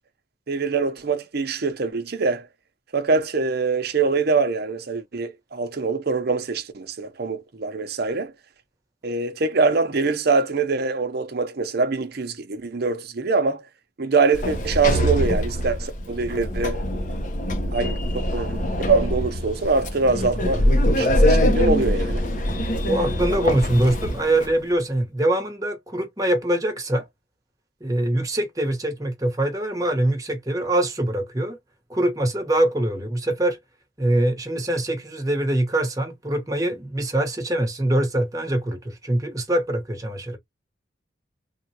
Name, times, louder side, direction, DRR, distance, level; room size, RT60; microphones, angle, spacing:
voice 1, 0.5-2.4 2.9-8.3 9.0-13.6 14.0-16.8 17.7-22.2, right 4 dB, 55° right, 0.6 m, -24 dB
Sliding door, 14.3-24.5, equal, 45° left, 0.7 m, -23 dB
voice 2, 22.9-27.1 27.8-31.6 31.9-33.6 34.0-40.4, right 1 dB, 20° right, 1.0 m, -23 dB
3.5 x 2.2 x 2.8 m
head